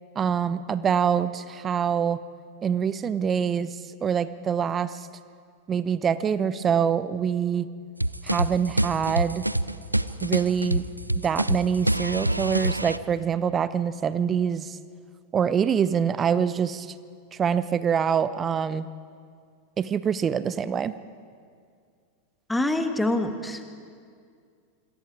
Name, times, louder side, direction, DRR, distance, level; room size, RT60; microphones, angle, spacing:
voice 1, 0.2-2.2 2.6-3.7 4.0-4.9 5.7-7.7 8.2-9.4 10.2-10.8 11.2-14.8 15.3-16.9 17.4-18.9 19.8-20.9, right 7 dB, 25° right, 15 dB, 0.7 m, -25 dB
sound 1, 8.0-13.0, right 1 dB, 85° right, 0.5 m, -26 dB
voice 2, 22.5-23.6, left 1 dB, 5° left, 8 dB, 1.4 m, -25 dB
27.0 x 22.0 x 4.8 m, 2.2 s
figure-of-eight pair, 90°, 0 cm